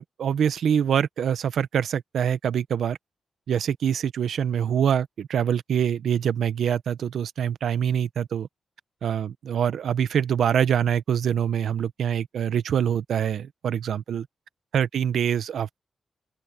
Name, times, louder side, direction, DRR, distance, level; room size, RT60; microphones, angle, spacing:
voice 1, 0.0-3.0 3.5-8.5 9.0-14.3 14.7-15.8, right 8 dB, 85° right, 0.9 m, -25 dB
open air
wide cardioid pair, 125°, 0 cm